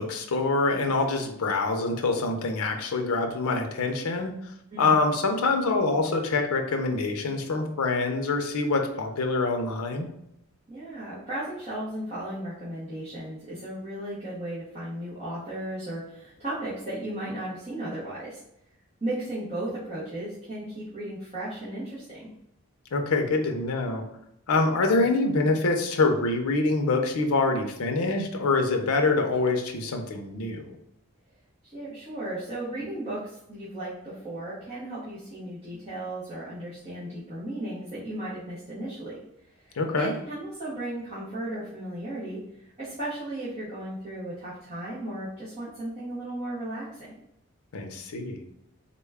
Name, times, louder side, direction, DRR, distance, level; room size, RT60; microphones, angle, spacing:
voice 1, 0.0-4.3 4.8-10.1 22.9-24.0 24.5-30.8 39.8-40.1 47.7-48.4, left 3 dB, 75° left, 4 dB, 0.5 m, -25 dB
voice 2, 10.7-18.4 19.0-22.3 31.6-39.2 39.5-47.1, right 1 dB, 30° right, -10 dB, 0.9 m, -35 dB
3.7 x 2.2 x 3.4 m, 0.79 s
head